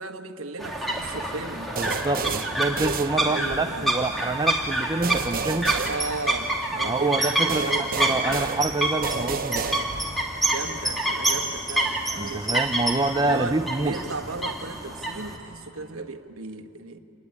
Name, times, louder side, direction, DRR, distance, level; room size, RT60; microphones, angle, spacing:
voice 1, 0.0-1.8 3.2-3.9 5.9-8.0 10.4-12.6 13.2-17.0, right 3 dB, 70° right, 6 dB, 1.4 m, -35 dB
sound 1, 0.6-15.4, right 1 dB, ahead, 2.9 m, -28 dB
voice 2, 1.8-5.8 6.8-9.7 12.2-13.9, right 2 dB, 20° right, 7 dB, 0.6 m, -27 dB
sound 2, 1.8-3.7 5.0-6.8 7.5-10.3, right 5 dB, 45° right, 1.0 m, -32 dB
Boom, 2.2-5.3, left 1 dB, 75° left, 4.5 m, -47 dB
27.0 x 20.5 x 9.7 m, 2.7 s
head